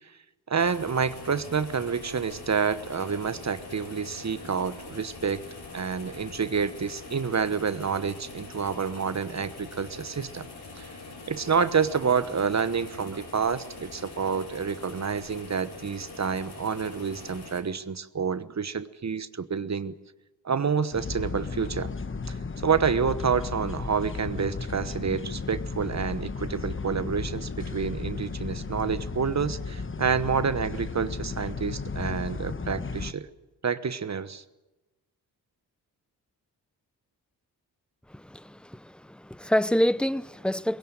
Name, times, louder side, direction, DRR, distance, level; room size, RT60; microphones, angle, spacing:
voice 1, 0.5-5.4 5.7-10.5 10.8-10.9 11.3-19.9 20.4-21.9 22.3-33.3 33.6-34.4, right 6 dB, 40° right, 1.2 m, -28 dB
sound 1, 0.6-17.6, left 3 dB, 60° left, 6.6 m, -43 dB
sound 2, 20.9-33.1, left 4 dB, 30° left, 1.1 m, -34 dB
voice 2, 38.1-40.8, left 1 dB, ahead, 0.7 m, -27 dB
21.0 x 17.0 x 9.1 m
supercardioid pair, 45°, 43 cm